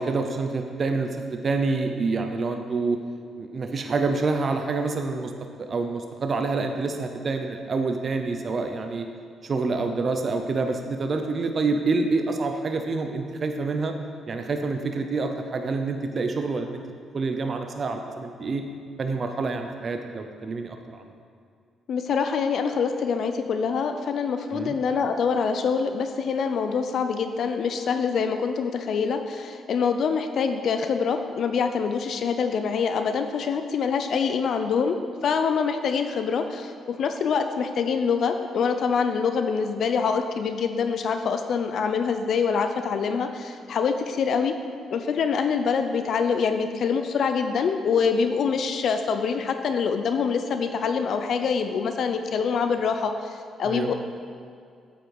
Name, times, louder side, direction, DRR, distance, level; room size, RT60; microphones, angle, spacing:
voice 1, 0.0-3.0 3.4-5.3 5.6-9.1 9.4-13.9 14.3-16.8 17.1-18.6 19.0-21.0 24.5-24.8 53.6-53.9, right 3 dB, 45° right, 5 dB, 0.7 m, -27 dB
voice 2, 21.9-35.0 35.2-44.6 44.9-53.9, left 6 dB, 65° left, 7 dB, 0.5 m, -25 dB
8.4 x 8.1 x 4.7 m, 2.3 s
cardioid pair, 90°, 0 cm